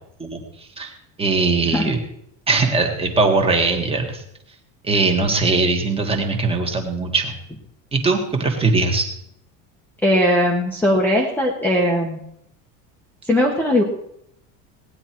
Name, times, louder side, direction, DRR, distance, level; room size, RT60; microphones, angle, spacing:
voice 1, 0.2-0.9 1.2-2.0 2.5-4.2 4.8-7.3 7.9-9.1, right 3 dB, 15° right, 3 dB, 1.6 m, -20 dB
voice 2, 10.0-12.2 13.3-13.8, left 1 dB, 5° left, -1 dB, 1.0 m, -19 dB
18.5 x 9.9 x 4.5 m, 0.74 s
cardioid pair, 165°, 39 cm